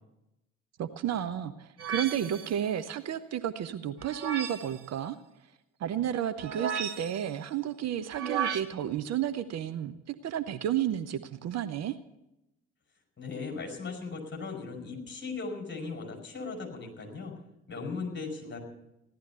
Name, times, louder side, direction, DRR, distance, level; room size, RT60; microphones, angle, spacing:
voice 1, 0.8-5.2 5.8-12.0, right 10 dB, 45° right, 11 dB, 0.8 m, -32 dB
sound 1, 1.8-2.6 4.0-4.8 6.4-7.3 8.1-8.6, right 7 dB, 75° right, 1.0 m, -34 dB
voice 2, 13.2-17.3 17.7-18.6, left 4 dB, 30° left, 1 dB, 5.3 m, -38 dB
16.0 x 12.0 x 7.0 m, 0.89 s
figure-of-eight pair, 45°, 37 cm